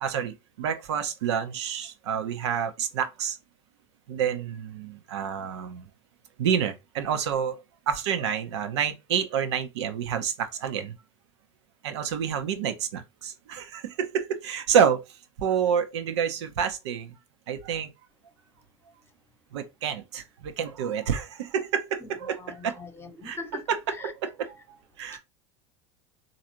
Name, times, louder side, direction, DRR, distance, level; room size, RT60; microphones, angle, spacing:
voice 1, 0.0-3.4 4.1-5.9 6.4-11.0 11.8-17.2 17.5-17.9 19.5-22.8 23.2-25.2, right 8 dB, 70° right, 0.7 m, -28 dB
voice 2, 22.3-23.6 25.1-25.2, left 3 dB, 15° left, 1.0 m, -41 dB
4.0 x 2.6 x 2.8 m
hypercardioid pair, 80°, 15 cm